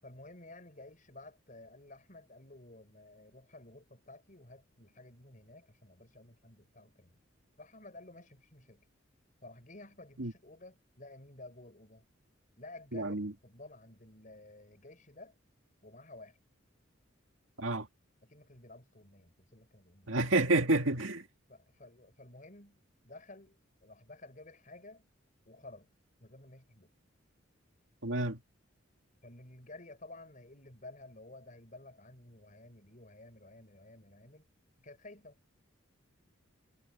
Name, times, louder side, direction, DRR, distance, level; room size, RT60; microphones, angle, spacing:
voice 1, 0.0-7.2 7.6-8.9 9.4-12.1 12.6-15.4 15.8-16.4 18.2-20.2 21.5-25.1 25.5-25.9 26.2-26.9 29.2-34.5 34.8-35.4, left 2 dB, 40° left, 5.7 m, -53 dB
voice 2, 12.9-13.3 17.6-17.9 20.1-21.3 28.0-28.4, right 2 dB, 85° right, 2.1 m, -29 dB
head